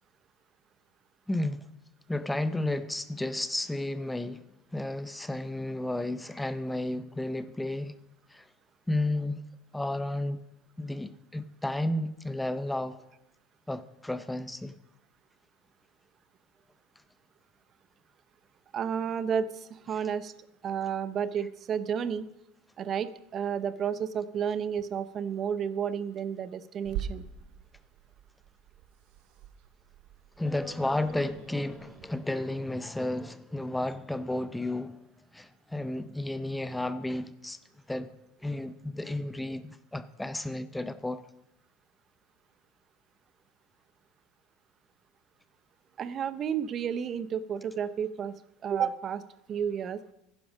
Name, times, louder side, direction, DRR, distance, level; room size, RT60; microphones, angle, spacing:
voice 1, 1.3-1.7 2.1-4.5 4.7-7.9 8.3-8.5 8.9-9.5 9.7-10.4 10.8-13.0 13.7-14.7 30.4-35.0 35.3-37.6 37.9-38.1 38.4-41.2, left 1 dB, 5° left, 0.5 m, -32 dB
voice 2, 18.7-20.3 20.6-22.3 22.8-27.2 46.0-48.3 48.6-49.2 49.5-50.0, right 7 dB, 35° right, 0.6 m, -31 dB
Growling / Hiss, 26.8-32.1, right 9 dB, 65° right, 1.6 m, -43 dB
10.5 x 10.0 x 6.2 m
supercardioid pair, 115°, 0 cm